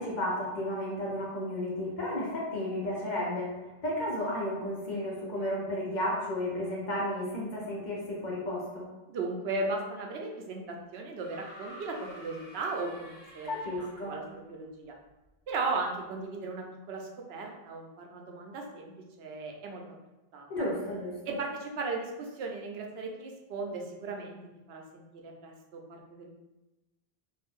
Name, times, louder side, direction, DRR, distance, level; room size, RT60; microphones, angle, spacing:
voice 1, 0.0-3.5 3.8-8.9 13.4-14.2 20.5-21.1, left 1 dB, 50° left, -4 dB, 0.8 m, -33 dB
voice 2, 9.1-13.5 13.8-14.2 14.5-15.0 15.5-19.8 20.3-20.7 21.3-24.4 24.7-26.3, right 3 dB, 80° right, 1 dB, 0.8 m, -36 dB
sound 1, 11.2-14.3 15.5-15.6, equal, 35° right, 0.9 m, -50 dB
2.5 x 2.5 x 3.5 m, 1.0 s
omnidirectional pair, 1.0 m